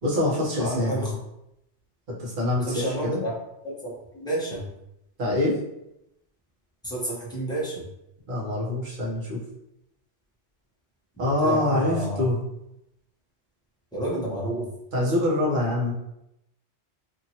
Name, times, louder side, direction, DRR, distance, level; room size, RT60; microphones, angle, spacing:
voice 1, 0.0-1.1 2.2-3.2 5.2-5.6 8.3-9.4 11.2-12.4 14.9-15.9, left 1 dB, 45° right, -6 dB, 1.0 m, -25 dB
voice 2, 0.6-1.1 2.6-3.3 3.6-4.6 6.8-7.8 11.2-12.2 13.9-14.7, right 1 dB, 5° left, -7 dB, 0.8 m, -30 dB
2.8 x 2.7 x 2.8 m, 0.84 s
omnidirectional pair, 1.2 m